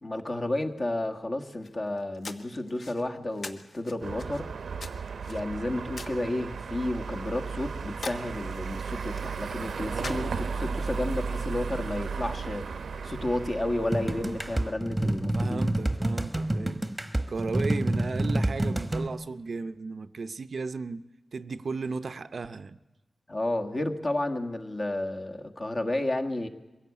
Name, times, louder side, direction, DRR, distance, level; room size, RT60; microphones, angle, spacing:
voice 1, 0.0-4.5 5.3-10.3 10.6-12.7 13.0-15.6 23.3-26.5, left 1 dB, 35° left, 1.5 m, -31 dB
sound 1, 1.5-10.8, left 3 dB, 65° left, 1.4 m, -46 dB
sound 2, 4.0-14.7, right 5 dB, 90° right, 0.8 m, -35 dB
voice 2, 9.9-10.5 15.3-16.9 17.3-21.1 21.3-22.8, right 4 dB, 55° right, 0.6 m, -35 dB
sound 3, 13.9-19.1, right 1 dB, 10° right, 1.2 m, -28 dB
22.5 x 16.5 x 8.3 m
wide cardioid pair, 130°, 0 cm